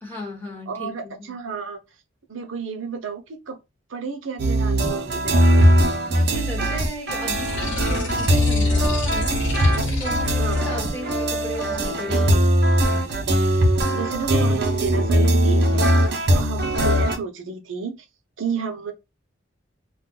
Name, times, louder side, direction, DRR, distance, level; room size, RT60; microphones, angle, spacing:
voice 1, 0.0-1.3 6.1-9.5 10.0-12.5, left 1 dB, 10° left, 1.2 m, -35 dB
voice 2, 0.7-1.8 2.3-3.6 3.9-5.7 10.4-10.8 13.9-15.9 16.3-18.0 18.4-18.9, right 5 dB, 85° right, 0.7 m, -31 dB
sound 1, 4.4-17.2, equal, 55° right, 0.8 m, -20 dB
sound 2, 7.3-10.7, left 1 dB, 75° left, 1.0 m, -28 dB
2.5 x 2.3 x 3.7 m
head